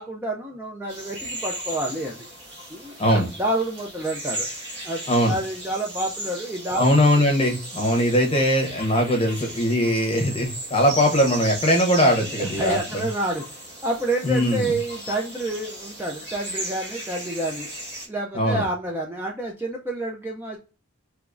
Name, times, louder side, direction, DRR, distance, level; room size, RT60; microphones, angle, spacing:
voice 1, 0.0-2.2 2.7-4.5 4.8-6.9 12.4-17.7 18.1-20.6, right 1 dB, 10° right, 0 dB, 0.3 m, -29 dB
sound 1, 0.9-18.1, right 1 dB, 55° right, 1.4 m, -36 dB
voice 2, 6.8-13.0 14.2-14.7 18.3-18.6, equal, 25° left, 2 dB, 0.8 m, -20 dB
3.3 x 3.0 x 2.4 m, 0.35 s
head